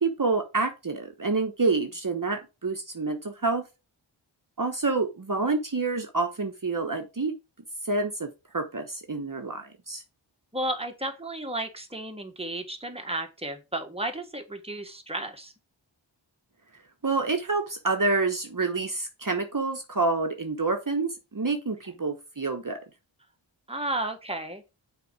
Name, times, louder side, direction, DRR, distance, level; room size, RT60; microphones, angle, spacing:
voice 1, 0.0-3.6 4.6-7.3 7.9-10.0 17.0-22.8, right 3 dB, 40° right, 1.2 m, -28 dB
voice 2, 10.5-15.5 23.7-24.7, right 1 dB, 10° right, 1.6 m, -33 dB
6.9 x 4.3 x 4.8 m
cardioid pair, 40°, 48 cm